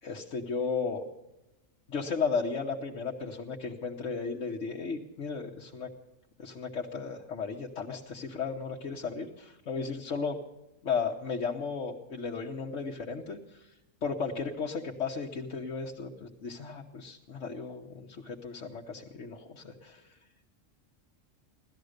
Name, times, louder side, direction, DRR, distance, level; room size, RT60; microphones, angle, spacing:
voice 1, 0.0-1.0 1.9-5.9 6.4-10.4 10.8-13.6 14.0-20.1, left 5 dB, 70° left, -2 dB, 1.5 m, -35 dB
17.5 x 13.0 x 6.6 m, 0.94 s
omnidirectional pair, 1.3 m